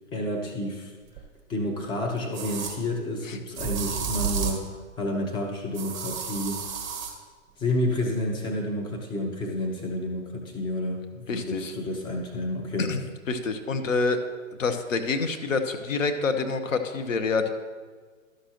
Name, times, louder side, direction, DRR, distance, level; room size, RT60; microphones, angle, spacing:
voice 1, 0.1-0.9 1.5-4.7 5.0-7.0 7.6-13.0, left 1 dB, 10° left, 1 dB, 0.8 m, -30 dB
sound 1, 1.2-1.3 2.3-2.8 3.5-4.7 5.7-7.1, right 7 dB, 20° right, 1.3 m, -31 dB
voice 2, 11.3-11.7 12.8-13.0 13.3-14.2 14.6-17.5, left 4 dB, 70° left, 7 dB, 1.0 m, -27 dB
12.5 x 6.5 x 3.0 m, 1.5 s
figure-of-eight pair, 130°, 40 cm